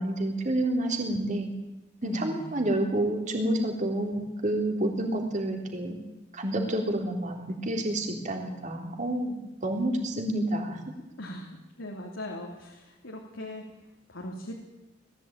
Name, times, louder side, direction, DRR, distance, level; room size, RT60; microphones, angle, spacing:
voice 1, 0.0-1.5 2.0-6.0 6.3-9.4 9.6-10.8, right 1 dB, 40° right, 2 dB, 3.6 m, -29 dB
voice 2, 2.0-2.7 11.2-13.6 14.1-14.5, left 1 dB, 80° left, 0 dB, 3.1 m, -40 dB
20.0 x 15.0 x 9.0 m, 0.98 s
head